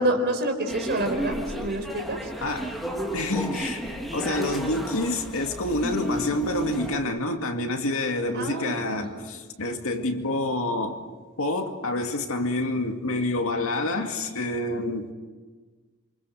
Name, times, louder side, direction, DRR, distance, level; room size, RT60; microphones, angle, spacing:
voice 1, 0.0-2.2 8.3-9.0, right 1 dB, 50° right, 4.5 m, -27 dB
sound 1, 0.7-7.0, right 1 dB, ahead, 2.9 m, -32 dB
voice 2, 2.4-2.7 3.1-3.9 4.1-11.0 11.4-15.1, left 2 dB, 65° left, 2.3 m, -28 dB
28.5 x 26.0 x 6.5 m
head